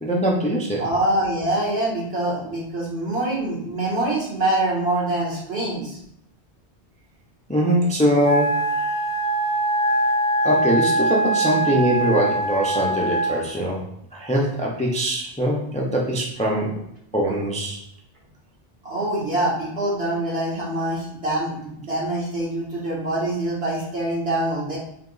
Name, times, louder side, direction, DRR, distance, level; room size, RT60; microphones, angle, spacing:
voice 1, 0.0-0.8 7.5-8.9 10.4-13.8 14.1-16.7 17.1-17.8, equal, 10° left, -2 dB, 0.4 m, -22 dB
voice 2, 0.8-6.0 18.8-24.8, right 1 dB, 70° right, -5 dB, 1.6 m, -25 dB
Wind instrument woodwind instrument, 8.2-13.4, right 2 dB, 35° left, 0.7 m, -22 dB
3.5 x 2.8 x 3.8 m, 0.74 s
omnidirectional pair, 1.1 m